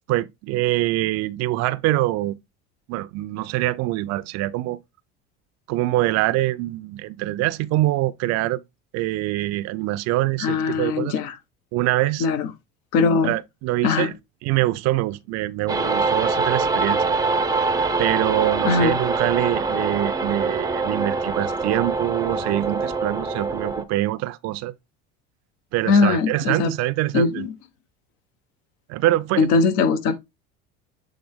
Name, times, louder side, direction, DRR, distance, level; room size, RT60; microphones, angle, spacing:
voice 1, 0.1-2.4 2.9-4.8 5.7-8.6 8.9-11.2 11.7-12.3 13.2-14.1 14.4-17.1 18.0-24.7 25.7-27.5 28.9-29.6, right 16 dB, 60° right, 0.5 m, -24 dB
voice 2, 10.4-11.4 12.2-12.5 12.9-13.3 13.8-14.1 18.6-18.9 25.9-26.7 27.1-27.5 29.4-30.2, left 4 dB, 70° left, 1.2 m, -20 dB
Beach distortion, 15.7-23.8, right 3 dB, 10° right, 0.6 m, -24 dB
7.8 x 3.5 x 3.5 m
supercardioid pair, 115°, 31 cm